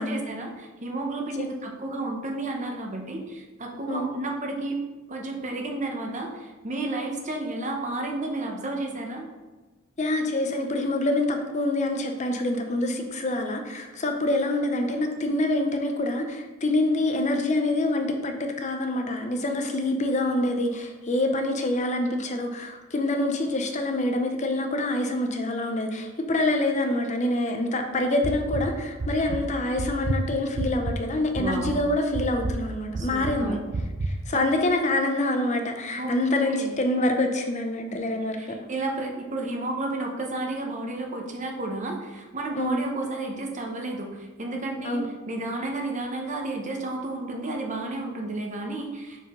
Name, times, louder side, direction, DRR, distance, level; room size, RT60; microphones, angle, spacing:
voice 1, 0.0-4.8 5.1-9.3 31.4-31.8 33.0-33.6 35.9-36.1 36.5-36.8 37.9-38.0 38.4-45.0 45.3-49.3, right 2 dB, 35° right, 1 dB, 0.9 m, -32 dB
voice 2, 10.0-33.6 34.1-38.5 42.6-42.8 44.8-45.1, left 1 dB, 35° left, 4 dB, 0.5 m, -26 dB
sound 1, 28.2-28.6 29.0-29.4 29.8-31.0 31.4-31.8 32.1-32.6 32.9-33.4 33.7-34.1, right 2 dB, 50° right, 0.5 m, -29 dB
5.7 x 4.6 x 3.7 m, 1.2 s
head